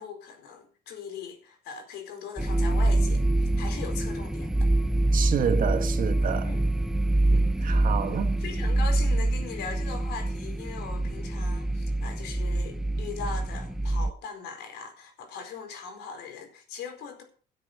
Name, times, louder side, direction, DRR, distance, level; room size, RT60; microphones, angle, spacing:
voice 1, 0.0-4.7 6.4-6.6 7.3-7.8 8.4-17.2, left 6 dB, 80° left, 4.6 m, -40 dB
sound 1, 2.4-14.1, right 2 dB, 5° right, 0.9 m, -25 dB
voice 2, 5.1-6.5 7.3-8.4, right 7 dB, 55° right, 2.3 m, -29 dB
13.0 x 8.3 x 6.8 m
cardioid pair, 110°, 17 cm